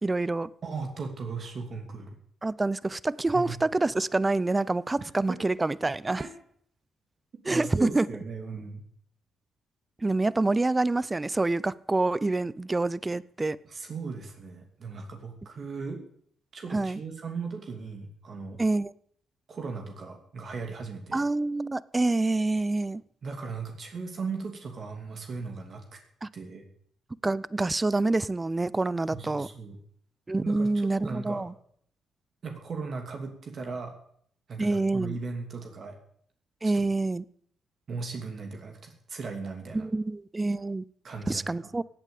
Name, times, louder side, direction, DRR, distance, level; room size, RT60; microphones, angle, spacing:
voice 1, 0.0-0.5 2.4-6.3 7.4-8.1 10.0-13.6 16.7-17.0 18.6-18.9 21.1-23.0 26.2-26.3 27.2-29.5 30.3-31.5 34.6-35.2 36.6-37.2 39.7-40.8 41.3-41.8, right 2 dB, 20° right, 21 dB, 0.6 m, -27 dB
voice 2, 0.6-2.1 3.3-3.6 5.3-5.4 6.2-6.3 7.5-8.8 13.7-16.0 16.5-18.6 19.5-21.2 23.2-25.8 26.3-26.7 29.1-29.8 30.4-31.4 32.4-33.9 34.5-36.0 36.7-36.8 37.9-39.9 41.0-41.4, right 4 dB, 50° right, 3 dB, 2.8 m, -37 dB
16.5 x 9.0 x 8.4 m, 0.65 s
cardioid pair, 90°, 0 cm